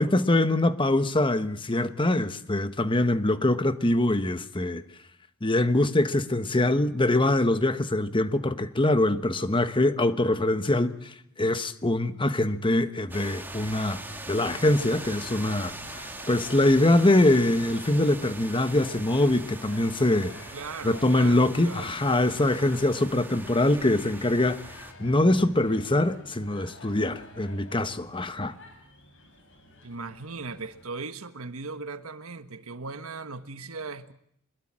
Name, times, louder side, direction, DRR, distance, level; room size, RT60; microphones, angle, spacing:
voice 1, 0.0-4.8 5.4-11.1 11.4-14.0 14.3-20.3 20.8-24.6 25.0-28.5, left 1 dB, 25° left, 1.1 m, -23 dB
sound 1, 13.1-24.9, right 2 dB, 10° right, 2.1 m, -42 dB
sound 2, 13.2-30.9, left 2 dB, 60° left, 6.8 m, -49 dB
voice 2, 20.5-21.9 29.8-34.1, right 4 dB, 75° right, 1.5 m, -38 dB
24.5 x 21.5 x 7.5 m
head